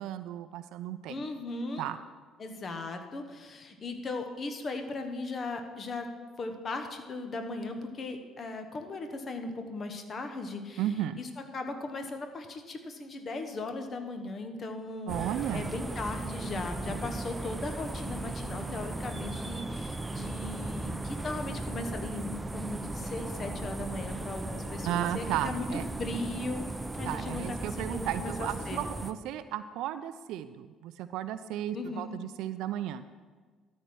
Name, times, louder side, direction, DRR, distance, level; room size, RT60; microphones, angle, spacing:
voice 1, 0.0-1.2 1.8-2.0 10.8-11.2 15.1-15.8 24.9-25.8 27.0-33.0, right 11 dB, 65° right, 12 dB, 0.3 m, -34 dB
voice 2, 1.1-1.9 2.4-6.1 6.4-10.8 11.2-15.1 15.5-26.6 26.9-28.8 31.7-32.1, left 2 dB, 40° left, 6 dB, 1.2 m, -38 dB
sound 1, 15.1-29.1, right 2 dB, 15° right, 0.6 m, -37 dB
12.5 x 4.3 x 6.3 m, 1.4 s
hypercardioid pair, 55°, 0 cm